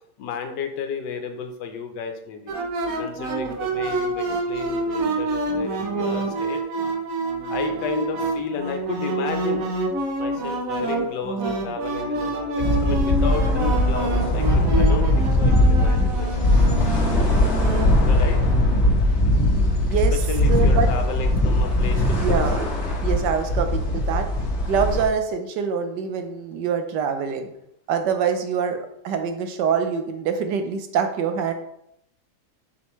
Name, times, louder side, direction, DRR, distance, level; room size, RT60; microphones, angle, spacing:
voice 1, 0.2-2.5 3.0-6.6 7.5-9.7 10.2-16.3 16.6-16.7 18.0-18.4 20.1-22.4, left 6 dB, 80° left, 6 dB, 1.5 m, -32 dB
sound 1, 2.5-18.8, right 2 dB, 60° right, 1.1 m, -27 dB
sound 2, 12.6-25.0, left 1 dB, 45° left, 1.3 m, -20 dB
voice 2, 19.3-20.1 20.5-20.9 22.1-22.7 23.0-24.3 24.7-27.5 27.9-28.8 29.0-31.5, right 7 dB, 80° right, 7 dB, 1.4 m, -25 dB
6.7 x 5.4 x 3.1 m, 0.78 s
omnidirectional pair, 1.9 m